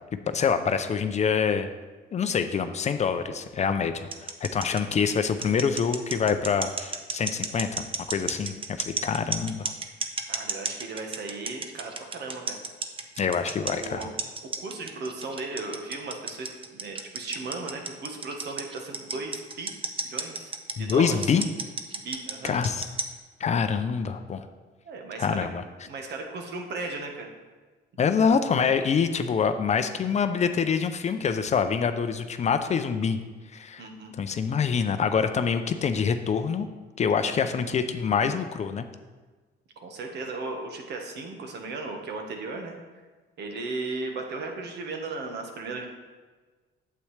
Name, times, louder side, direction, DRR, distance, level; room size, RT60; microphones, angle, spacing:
voice 1, 0.3-1.7 2.1-8.5 8.9-9.7 13.2-14.1 20.8-21.5 22.4-22.8 23.4-24.4 25.2-25.6 28.0-33.2 33.5-33.9 34.2-36.7 37.0-38.9, left 6 dB, 35° left, 9 dB, 0.5 m, -25 dB
sound 1, 4.1-23.2, right 4 dB, 30° right, 0.7 m, -32 dB
voice 2, 10.3-12.6 13.5-14.1 14.4-19.7 20.0-21.3 21.9-22.6 24.8-25.5 25.8-27.3 33.8-34.1 37.2-37.4 39.8-42.8 43.4-45.9, right 3 dB, 65° right, 3 dB, 1.4 m, -36 dB
8.7 x 7.6 x 3.3 m, 1.3 s
cardioid pair, 110°, 19 cm